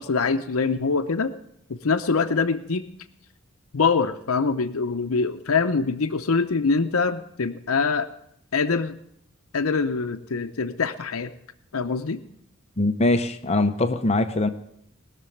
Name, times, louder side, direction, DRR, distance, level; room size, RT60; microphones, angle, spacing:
voice 1, 0.0-1.3 1.7-2.8 3.7-8.1 8.5-9.0 9.5-11.3 11.7-12.2, left 4 dB, 85° left, 8 dB, 0.7 m, -24 dB
voice 2, 12.8-14.5, left 2 dB, 30° left, 8 dB, 0.7 m, -22 dB
20.0 x 6.8 x 9.2 m, 0.75 s
head